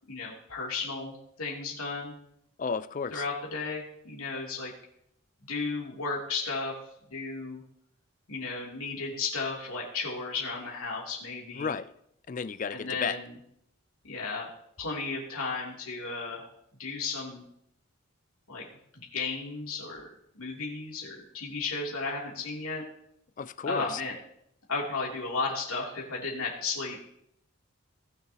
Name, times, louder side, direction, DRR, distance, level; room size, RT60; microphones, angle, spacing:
voice 1, 0.1-2.1 3.1-4.7 5.5-6.8 7.1-7.6 8.3-11.7 12.7-13.4 14.0-14.5 14.8-16.5 16.8-17.4 18.5-18.6 18.9-22.8 23.6-24.2 24.7-27.0, left 4 dB, 85° left, 3.1 m, -34 dB
voice 2, 2.6-3.2 11.6-11.9 12.3-13.2 23.4-24.0, left 5 dB, 35° left, 0.3 m, -33 dB
19.5 x 6.8 x 3.0 m
head